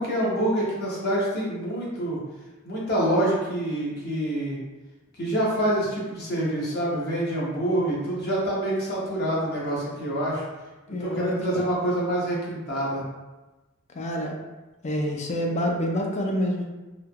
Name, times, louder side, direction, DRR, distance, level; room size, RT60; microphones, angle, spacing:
voice 1, 0.0-2.2 2.6-4.6 5.2-10.4 10.9-13.0, right 1 dB, 50° left, -6 dB, 1.0 m, -26 dB
voice 2, 10.9-11.3 13.9-14.3 14.8-16.7, equal, 35° left, 1 dB, 0.4 m, -27 dB
3.2 x 2.9 x 2.3 m, 1.1 s
head